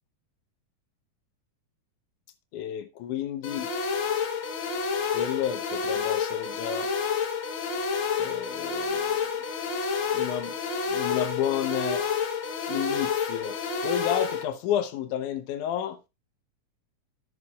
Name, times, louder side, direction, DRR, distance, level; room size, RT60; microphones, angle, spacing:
voice 1, 2.5-3.7 5.1-6.9 8.2-9.3 10.1-10.5 10.9-12.1 12.7-13.6 13.8-16.0, left 10 dB, 80° left, 2.3 m, -31 dB
sound 1, 3.4-14.4, left 6 dB, 55° left, 1.5 m, -29 dB
14.5 x 6.3 x 2.3 m
omnidirectional pair, 3.6 m